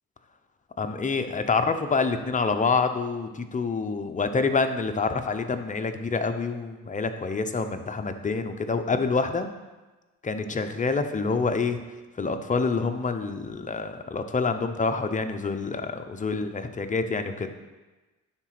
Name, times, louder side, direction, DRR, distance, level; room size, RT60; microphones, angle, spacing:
voice 1, 0.8-9.5 10.2-11.8 12.2-17.5, left 4 dB, 25° left, 7 dB, 0.7 m, -27 dB
9.8 x 4.0 x 6.0 m, 1.2 s
cardioid pair, 90°, 30 cm